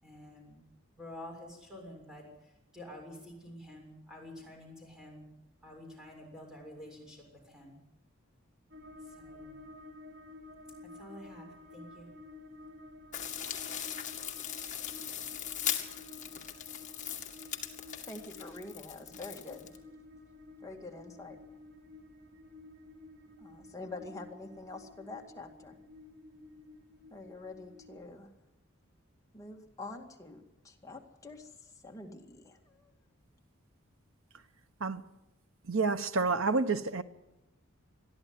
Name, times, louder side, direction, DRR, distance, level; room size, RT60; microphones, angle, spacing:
voice 1, 0.0-0.6 1.0-5.3 5.6-7.8 9.0-9.5 10.9-12.1, left 1 dB, 5° right, 0 dB, 6.8 m, -49 dB
sound 1, 8.7-28.1, left 2 dB, 60° right, 3.9 m, -52 dB
sound 2, 13.1-19.8, left 10 dB, 35° left, 2.2 m, -39 dB
voice 2, 18.1-19.7 20.6-21.4 23.4-25.8 27.1-28.3 29.3-31.5 31.8-32.9, left 2 dB, 15° left, 1 dB, 2.1 m, -46 dB
voice 3, 35.7-37.0, right 4 dB, 75° right, 10 dB, 1.2 m, -29 dB
22.0 x 13.0 x 9.5 m, 0.94 s
head